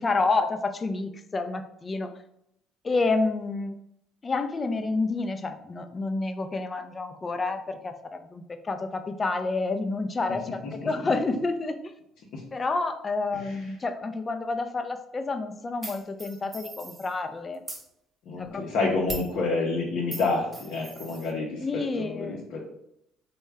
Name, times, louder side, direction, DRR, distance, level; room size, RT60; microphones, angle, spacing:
voice 1, 0.0-2.1 2.8-3.7 4.2-11.9 12.5-17.6 18.4-19.0 21.6-22.4, left 3 dB, 30° left, 8 dB, 0.4 m, -29 dB
voice 2, 10.6-11.1 12.3-12.4 13.3-13.7 18.3-22.6, left 3 dB, 70° left, -3 dB, 0.6 m, -29 dB
sound 1, 15.8-17.1 17.5-17.9 19.1-19.4 20.1-21.3, right 2 dB, 25° right, 0.7 m, -39 dB
3.4 x 2.1 x 3.3 m, 0.78 s
supercardioid pair, 75°, 0 cm